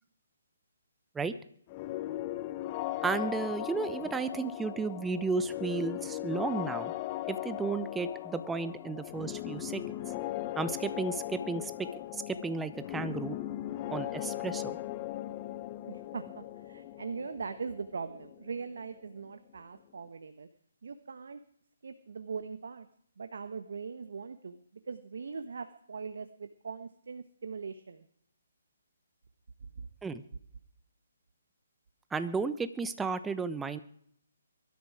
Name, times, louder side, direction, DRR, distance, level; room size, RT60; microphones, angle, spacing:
sound 1, 1.7-19.3, left 15 dB, 30° left, 0.9 m, -38 dB
voice 1, 3.0-6.9 7.3-9.8 10.6-11.9 12.1-13.4 13.9-14.8 30.0-30.2 32.1-33.8, right 4 dB, 10° right, 12 dB, 1.0 m, -33 dB
voice 2, 15.8-20.5 20.8-21.4 21.8-22.9 23.2-28.0 29.8-29.9, right 5 dB, 65° right, 10 dB, 1.2 m, -41 dB
22.5 x 12.5 x 4.9 m, 0.66 s
figure-of-eight pair, 140°, 0 cm